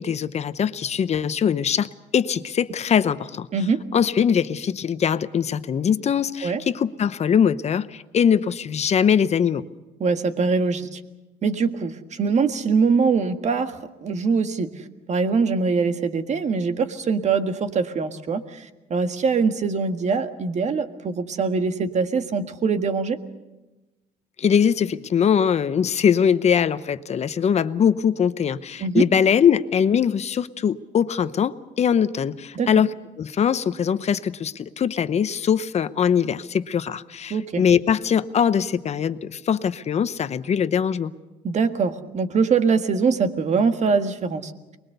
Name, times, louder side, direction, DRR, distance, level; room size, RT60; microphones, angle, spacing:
voice 1, 0.0-3.5 3.9-9.7 24.4-41.1, left 7 dB, 40° left, 13 dB, 0.9 m, -22 dB
voice 2, 3.5-3.8 6.4-6.6 10.0-11.0 11.4-13.7 14.0-14.7 15.1-18.6 18.9-23.2 28.8-29.1 32.5-32.7 37.3-37.6 41.4-44.5, right 5 dB, 45° right, 8 dB, 1.7 m, -23 dB
24.0 x 21.5 x 6.8 m, 1.1 s
cardioid pair, 110°, 17 cm